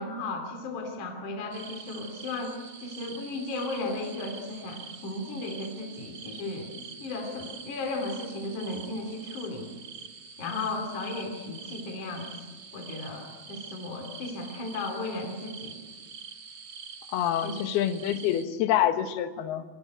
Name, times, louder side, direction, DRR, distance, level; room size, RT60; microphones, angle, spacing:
voice 1, 0.0-2.5 2.8-9.7 10.4-12.3 12.7-15.8 17.4-17.7 18.2-18.3, left 2 dB, 50° left, 3 dB, 4.1 m, -35 dB
sound 1, 1.5-18.4, right 5 dB, 60° right, 1.5 m, -45 dB
voice 2, 17.1-19.6, left 11 dB, 70° left, 8 dB, 3.2 m, -26 dB
24.5 x 23.0 x 9.2 m, 1.4 s
omnidirectional pair, 4.9 m